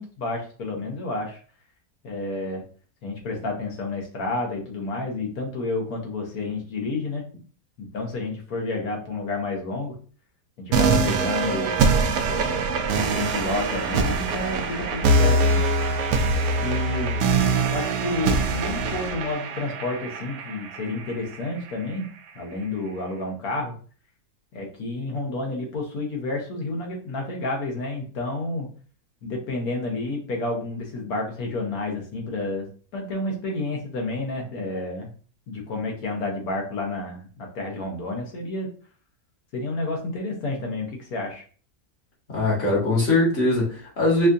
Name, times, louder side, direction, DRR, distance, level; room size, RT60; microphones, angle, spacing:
voice 1, 0.0-1.4 2.0-2.6 3.0-7.2 7.8-10.0 10.6-12.0 12.2-12.8 13.1-15.6 16.6-17.2 17.7-22.0 22.3-23.8 24.5-28.7 29.2-32.7 32.9-35.1 35.5-38.7 39.5-41.4, left 2 dB, 65° left, 1 dB, 1.4 m, -30 dB
sound 1, 10.7-21.7, right 3 dB, 70° right, 0.7 m, -23 dB
voice 2, 42.3-44.3, left 2 dB, 40° left, -5 dB, 1.6 m, -21 dB
4.8 x 2.4 x 2.6 m, 0.42 s
omnidirectional pair, 1.7 m